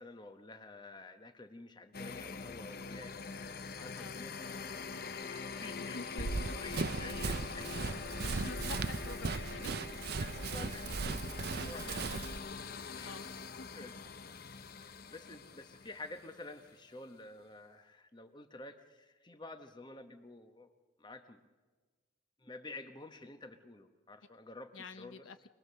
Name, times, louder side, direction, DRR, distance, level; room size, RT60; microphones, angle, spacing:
voice 1, 0.0-4.8 5.1-8.0 9.3-9.6 10.1-12.4 12.9-14.0 14.6-20.7 21.0-21.4 22.4-25.3, left 2 dB, 20° left, 8 dB, 1.0 m, -51 dB
sound 1, 1.9-16.7, left 5 dB, 50° left, 0.7 m, -44 dB
voice 2, 5.9-7.0 8.2-9.7 13.0-13.3 13.6-13.7 24.7-25.5, left 4 dB, 80° left, 11 dB, 0.8 m, -48 dB
Run, 6.2-12.4, right 4 dB, 50° right, 0.6 m, -37 dB
24.5 x 20.0 x 6.8 m, 1.4 s
head